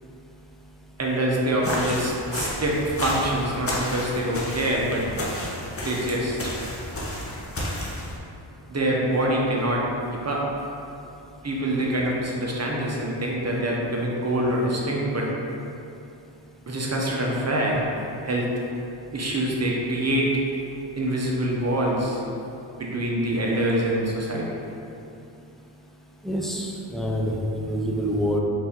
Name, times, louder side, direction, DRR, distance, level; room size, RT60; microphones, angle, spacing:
voice 1, 1.0-5.0 5.8-6.5 8.7-9.8 10.1-10.4 11.4-15.3 16.7-17.8 18.2-18.5 19.1-20.3 21.0-22.2 22.8-24.5, right 1 dB, 30° right, -3 dB, 0.8 m, -25 dB
sound 1, 1.6-8.2, left 1 dB, 30° left, 0.8 m, -31 dB
voice 2, 26.2-28.4, equal, ahead, -1 dB, 0.3 m, -26 dB
4.2 x 2.7 x 3.6 m, 2.7 s
cardioid pair, 70°, 49 cm